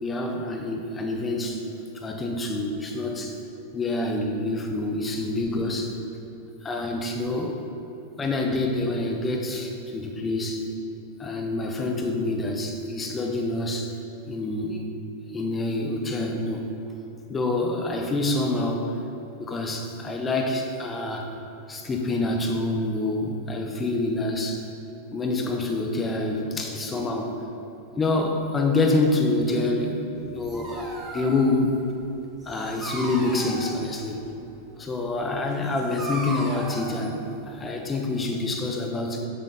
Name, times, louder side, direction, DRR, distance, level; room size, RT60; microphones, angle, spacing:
voice 1, 0.0-1.6 2.0-3.4 3.7-5.9 6.6-7.6 8.2-10.7 11.2-13.9 14.3-14.8 15.3-16.7 17.3-18.9 19.4-21.3 21.7-24.6 25.1-27.3 28.0-30.9 31.1-31.8 32.5-34.2 34.8-39.2, left 2 dB, 15° left, 2 dB, 0.7 m, -27 dB
Dog, 30.1-38.0, right 2 dB, 15° right, 1.0 m, -38 dB
7.1 x 3.8 x 3.8 m, 2.9 s
figure-of-eight pair, 90°, 0 cm